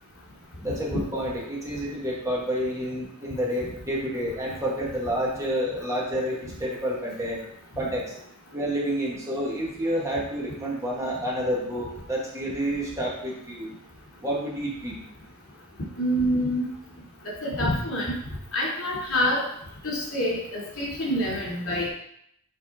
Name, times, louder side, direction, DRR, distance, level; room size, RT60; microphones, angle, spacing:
voice 1, 0.6-7.4 7.8-8.1 8.5-13.7 14.2-15.0, equal, 15° right, -4 dB, 1.5 m, -29 dB
voice 2, 16.0-16.7 17.4-18.1 18.5-19.4 19.8-21.9, equal, 80° left, -5 dB, 2.5 m, -26 dB
7.3 x 4.3 x 3.6 m, 0.71 s
head